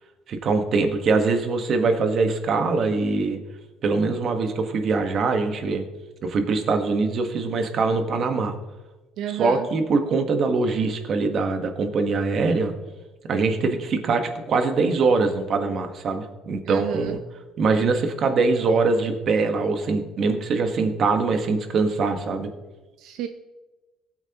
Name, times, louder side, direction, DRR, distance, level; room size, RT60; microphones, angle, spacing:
voice 1, 0.3-3.4 3.8-5.9 6.2-8.5 9.3-12.7 13.3-17.2 17.6-22.5, right 4 dB, 40° right, 6 dB, 1.4 m, -23 dB
voice 2, 9.2-9.7 16.6-17.1 23.0-23.3, right 10 dB, 75° right, 7 dB, 0.6 m, -30 dB
19.5 x 8.9 x 3.0 m, 1.2 s
cardioid pair, 160°, 0 cm